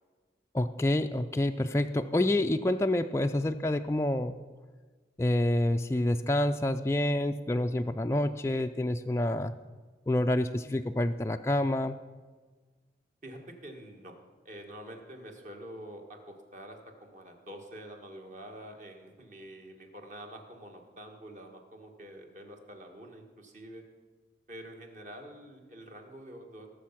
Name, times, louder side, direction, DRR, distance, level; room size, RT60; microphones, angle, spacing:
voice 1, 0.5-4.4 5.2-9.5 10.1-12.0, left 1 dB, 15° left, 6 dB, 0.3 m, -28 dB
voice 2, 13.2-14.1 14.4-23.8 24.5-26.7, right 1 dB, 45° right, 2 dB, 1.7 m, -47 dB
17.5 x 7.0 x 5.9 m, 1.4 s
head